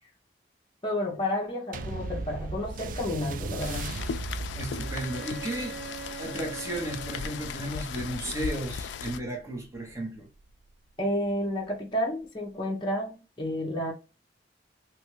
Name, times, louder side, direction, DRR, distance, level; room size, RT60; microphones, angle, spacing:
voice 1, 0.8-4.0 11.0-13.9, left 1 dB, 30° left, 0.7 m, -31 dB
sound 1, 1.7-10.5 11.3-11.4, right 3 dB, 50° right, 0.3 m, -39 dB
Rain, 3.6-9.2, left 6 dB, 85° left, 0.3 m, -37 dB
voice 2, 4.5-5.8 6.2-10.3, right 1 dB, 15° right, 1.0 m, -34 dB
Bowed string instrument, 4.7-8.2, right 6 dB, 70° right, 0.7 m, -43 dB
3.0 x 2.4 x 3.0 m
head